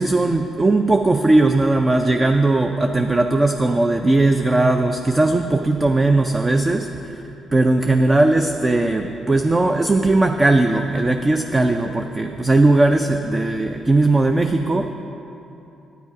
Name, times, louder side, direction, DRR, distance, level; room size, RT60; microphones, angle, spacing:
voice 1, 0.0-7.2 7.5-14.9, right 2 dB, 25° right, 5 dB, 0.4 m, -18 dB
9.3 x 9.2 x 4.8 m, 2.9 s
cardioid pair, 90°, 0 cm